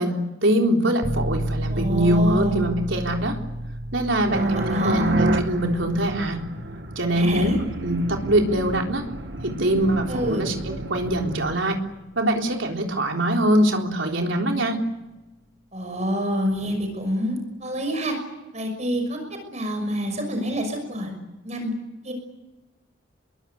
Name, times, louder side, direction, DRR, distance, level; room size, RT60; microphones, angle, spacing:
voice 1, 0.0-3.4 3.9-6.4 7.0-9.0 9.4-10.5 10.9-11.8 12.2-14.8, right 1 dB, 75° right, 2 dB, 3.8 m, -23 dB
sound 1, 1.0-11.6, right 1 dB, 20° right, 5.2 m, -33 dB
voice 2, 1.7-2.6 4.3-5.1 7.1-7.6 10.1-10.4 15.7-18.2 18.5-21.1 21.4-21.7 22.0-22.1, equal, 35° right, 4 dB, 6.1 m, -27 dB
sound 2, 4.3-11.6, right 1 dB, 60° right, 2.0 m, -29 dB
27.5 x 22.0 x 8.3 m, 1.1 s
head